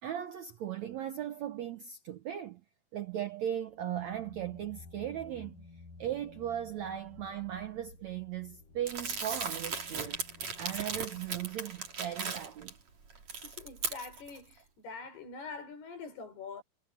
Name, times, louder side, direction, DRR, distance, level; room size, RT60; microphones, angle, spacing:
voice 1, 0.0-2.6 2.9-5.7 6.0-10.2 10.6-12.7, right 11 dB, 90° right, 1.6 m, -37 dB
sound 1, 3.7-12.3, left 3 dB, 55° left, 9.5 m, -54 dB
Crumpling crinkling, 8.9-12.7 13.1-14.4, right 5 dB, 45° right, 4.7 m, -37 dB
voice 2, 13.3-16.6, left 4 dB, 80° left, 6.9 m, -45 dB
omnidirectional pair, 4.6 m